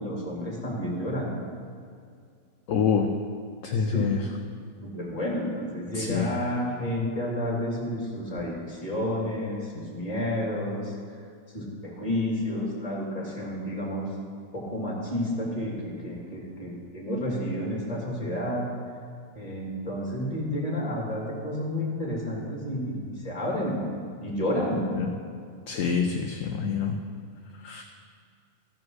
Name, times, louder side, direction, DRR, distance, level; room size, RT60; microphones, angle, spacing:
voice 1, 0.0-1.3 3.8-4.1 4.8-10.9 11.5-14.1 14.5-18.6 19.3-23.8 24.2-24.9, left 1 dB, 20° left, -3 dB, 2.5 m, -30 dB
voice 2, 2.7-3.1 3.6-4.2 5.9-6.3 25.0-25.1 25.7-27.0 27.6-27.8, left 6 dB, 65° left, 3 dB, 0.9 m, -26 dB
14.5 x 4.9 x 6.2 m, 2.2 s
omnidirectional pair, 1.8 m